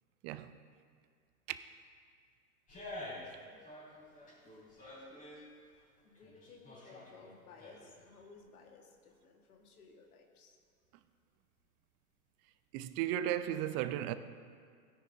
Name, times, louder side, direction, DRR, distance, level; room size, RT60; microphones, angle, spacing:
sound 1, 2.7-3.4 3.6-5.4 6.0-8.1 8.4-8.5, left 1 dB, 20° left, 3.0 m, -49 dB
voice 1, 3.1-3.6 6.0-10.6, left 4 dB, 70° left, 1.7 m, -58 dB
voice 2, 12.7-14.1, right 11 dB, 30° right, 0.5 m, -35 dB
16.5 x 9.9 x 2.7 m
figure-of-eight pair, 90°, 46 cm